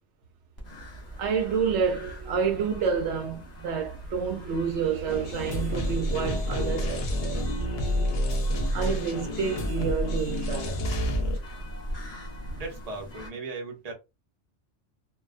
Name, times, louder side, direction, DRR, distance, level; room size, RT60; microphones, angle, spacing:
sound 1, 0.6-13.3, equal, 40° left, 0.8 m, -42 dB
Crowd, 0.6-11.3, right 2 dB, 20° left, 1.0 m, -40 dB
voice 1, 1.2-7.4 8.7-10.8, right 6 dB, 75° right, 0.8 m, -29 dB
sound 2, 5.1-11.4, equal, 60° left, 0.8 m, -29 dB
voice 2, 12.5-13.9, right 3 dB, 40° right, 0.7 m, -37 dB
2.3 x 2.2 x 2.4 m
omnidirectional pair, 1.2 m